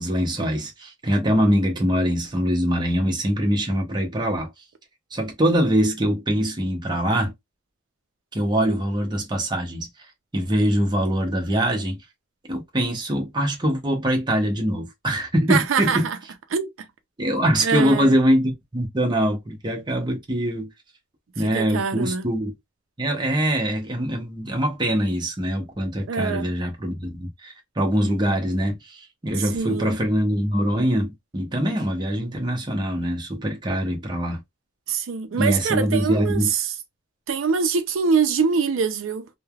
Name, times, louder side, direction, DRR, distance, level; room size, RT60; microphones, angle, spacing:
voice 1, 0.0-4.5 5.1-7.3 8.3-9.9 10.3-12.0 12.5-16.1 17.2-20.7 21.4-22.5 23.0-34.4 35.3-36.5, equal, 25° right, 0.7 m, -23 dB
voice 2, 15.5-16.2 16.5-16.7 17.6-18.2 21.4-22.3 26.1-26.5 29.4-30.0 34.9-36.7 37.3-39.3, right 5 dB, 85° right, 0.4 m, -24 dB
3.1 x 2.1 x 2.3 m
head